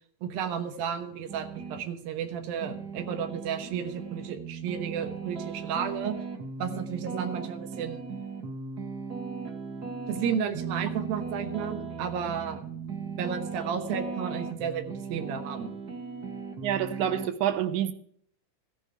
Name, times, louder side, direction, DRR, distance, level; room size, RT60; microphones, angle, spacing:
voice 1, 0.2-6.2 6.6-8.0 10.1-12.6 13.2-15.7, right 7 dB, 90° right, 3.0 m, -33 dB
sound 1, 1.3-1.8 2.3-17.3, right 5 dB, 55° right, 1.1 m, -37 dB
voice 2, 16.6-17.9, right 10 dB, 70° right, 2.1 m, -28 dB
15.0 x 10.0 x 4.8 m
omnidirectional pair, 4.0 m